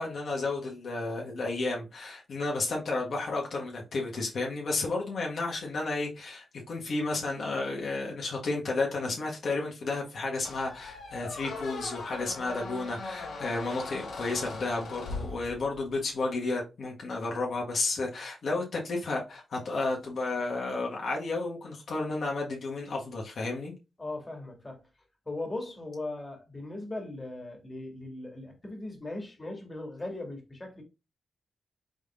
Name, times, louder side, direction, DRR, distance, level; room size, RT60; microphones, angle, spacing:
voice 1, 0.0-23.7, left 3 dB, 70° left, 1.6 m, -32 dB
Squeak, 10.4-15.9, left 3 dB, 90° left, 1.6 m, -40 dB
voice 2, 24.0-24.8 25.3-30.8, left 2 dB, 25° left, 2.0 m, -38 dB
5.2 x 3.6 x 2.5 m
cardioid pair, 65°, 0 cm